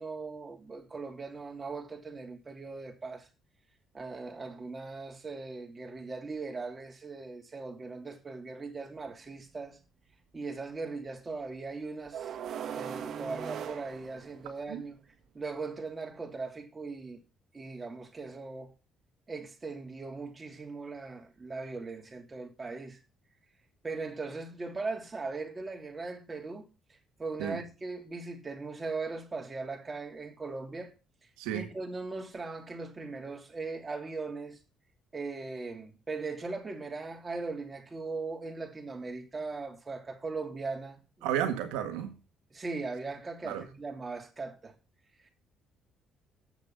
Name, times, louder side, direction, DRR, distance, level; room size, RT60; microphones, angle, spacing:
voice 1, 0.0-3.3 3.9-9.8 10.3-12.3 12.7-15.0 15.3-17.2 17.5-18.7 19.3-23.0 23.8-30.9 31.5-34.6 35.1-41.4 42.5-44.7 45.2-45.3, right 3 dB, 30° right, 3.0 m, -39 dB
sound 1, 9.0-9.1 12.1-14.8, right 8 dB, 65° right, 1.3 m, -39 dB
voice 2, 41.2-42.2 43.5-43.6, right 10 dB, 90° right, 1.6 m, -32 dB
8.4 x 6.6 x 7.1 m
supercardioid pair, 70°, 0 cm